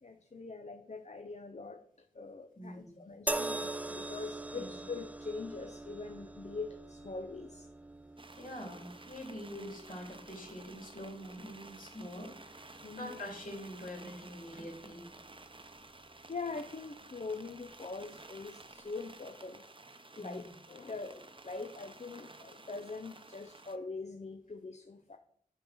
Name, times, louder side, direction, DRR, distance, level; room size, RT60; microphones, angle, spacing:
voice 1, 0.0-1.8 2.1-7.7 12.8-13.2 16.3-19.6 20.2-25.2, left 4 dB, 45° left, 6 dB, 0.7 m, -43 dB
voice 2, 2.6-3.0 4.5-4.7 8.3-15.0 20.2-20.4, equal, 65° left, -1 dB, 3.2 m, -45 dB
sound 1, 3.3-16.6 17.5-17.7, right 2 dB, 10° right, 0.4 m, -44 dB
sound 2, 8.2-23.8, right 2 dB, 35° right, 0.8 m, -53 dB
7.0 x 5.5 x 6.1 m, 0.64 s
cardioid pair, 45°, 15 cm